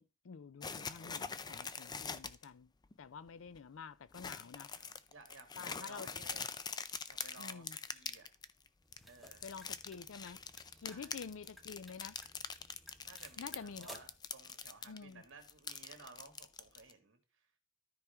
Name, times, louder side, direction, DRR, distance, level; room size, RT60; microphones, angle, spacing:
voice 1, 0.0-2.7 3.0-4.7 5.6-6.1 7.4-7.8 9.4-10.4 10.8-12.2 13.4-14.0 14.9-15.2, left 6 dB, 75° left, 0.5 m, -49 dB
sound 1, 0.6-2.4 2.8-2.9 3.3-3.6 4.1-8.7 8.9-15.0 15.2-16.9, left 6 dB, 20° left, 0.4 m, -44 dB
voice 2, 4.6-6.5 7.1-8.3 9.1-9.4 10.7-11.2 13.0-17.5, right 3 dB, 65° right, 2.2 m, -57 dB
sound 2, 8.8-14.3, right 1 dB, ahead, 0.9 m, -58 dB
13.0 x 4.7 x 3.5 m
head